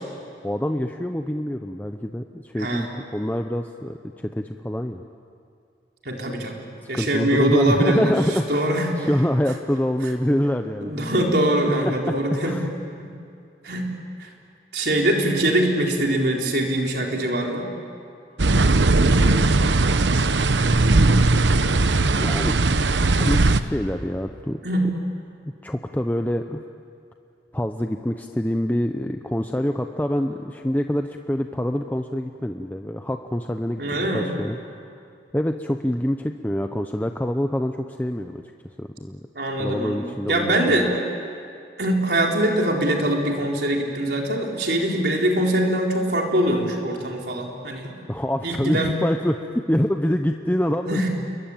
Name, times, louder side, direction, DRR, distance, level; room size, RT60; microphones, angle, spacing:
voice 1, 0.4-5.0 6.9-11.3 11.8-12.1 12.4-12.7 18.7-19.5 22.2-22.6 22.8-22.9 23.2-24.6 25.6-26.6 27.5-34.6 35.3-38.4 38.8-39.2 39.6-40.9 48.1-49.4 49.7-51.1, equal, 10° left, 5 dB, 0.7 m, -26 dB
voice 2, 2.6-2.9 6.0-6.6 6.9-8.1 8.5-8.9 10.8-12.6 13.0-13.1 13.6-13.9 14.2-14.3 14.7-17.7 24.6-24.9 33.8-34.4 39.3-40.9 41.8-47.9 48.4-49.0 50.9-51.1, right 1 dB, 65° right, 0 dB, 4.2 m, -23 dB
sound 1, 18.4-23.6, right 2 dB, 90° right, 0.9 m, -18 dB
29.0 x 22.5 x 8.9 m, 2.5 s
head